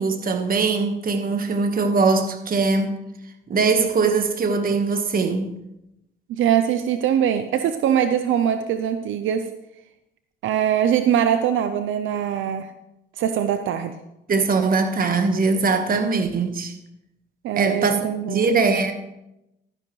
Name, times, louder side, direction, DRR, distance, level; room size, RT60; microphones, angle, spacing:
voice 1, 0.0-2.9 3.5-5.5 14.3-16.7 17.6-19.1, right 4 dB, 45° right, 1.4 m, -21 dB
voice 2, 6.3-9.5 10.4-12.7 13.2-13.9 17.4-18.6, right 9 dB, 80° right, 0.6 m, -22 dB
12.5 x 10.5 x 3.2 m
cardioid pair, 90°, 20 cm